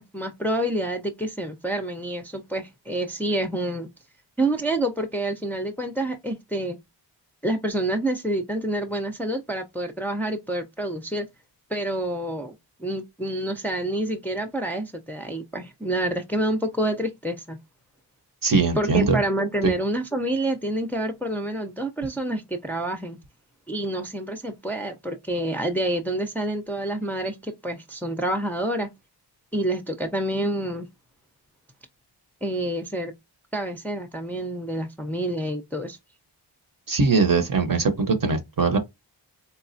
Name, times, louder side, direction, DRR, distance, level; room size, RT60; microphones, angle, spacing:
voice 1, 0.0-3.9 4.4-6.8 7.4-11.3 11.7-17.6 18.8-23.2 23.7-28.9 29.5-30.9 32.4-33.1 33.5-36.0, right 1 dB, 5° left, 0.5 m, -28 dB
voice 2, 18.4-19.2 19.6-19.7 36.9-38.8, right 4 dB, 45° right, 0.8 m, -21 dB
4.0 x 2.3 x 2.6 m
cardioid pair, 45°, 46 cm